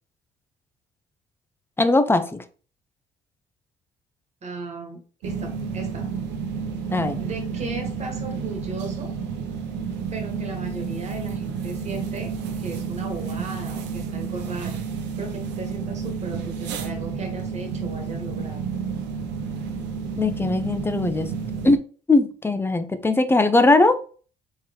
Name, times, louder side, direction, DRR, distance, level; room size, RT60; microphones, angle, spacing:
voice 1, 1.8-2.4 6.9-7.2 20.2-21.3 21.6-21.8 22.1-24.0, left 2 dB, 15° left, 10 dB, 0.6 m, -19 dB
voice 2, 4.4-6.1 7.2-9.1 10.1-14.8 15.2-18.6, right 3 dB, 40° right, 3 dB, 1.7 m, -36 dB
sound 1, 5.2-21.8, right 6 dB, 80° right, 0.9 m, -30 dB
4.5 x 3.8 x 3.1 m, 0.39 s
cardioid pair, 95°, 18 cm